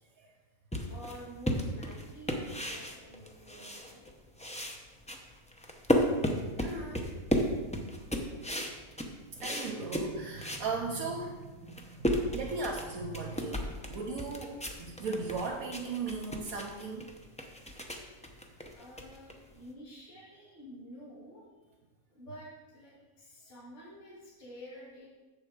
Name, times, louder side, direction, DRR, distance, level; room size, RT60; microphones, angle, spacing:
sound 1, 0.7-4.1 4.4-10.7 11.1-11.2 11.6-19.7, equal, 10° left, 0.5 m, -34 dB
voice 1, 0.9-4.0 4.3-4.4 18.7-21.5 22.1-25.1, equal, 55° left, -5 dB, 2.4 m, -49 dB
voice 2, 6.4-7.2 8.4-8.5 9.3-17.1, right 4 dB, 80° right, -1 dB, 1.3 m, -37 dB
7.3 x 7.1 x 4.8 m, 1.2 s
omnidirectional pair, 1.5 m